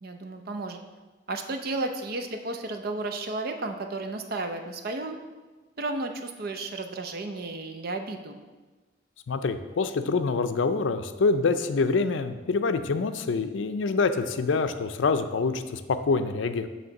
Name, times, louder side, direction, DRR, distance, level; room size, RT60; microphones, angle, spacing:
voice 1, 0.0-0.8 1.3-5.2 5.8-8.4, right 2 dB, 55° right, 6 dB, 0.6 m, -33 dB
voice 2, 9.3-16.7, left 4 dB, 80° left, 9 dB, 0.4 m, -26 dB
7.9 x 3.2 x 5.8 m, 1.3 s
head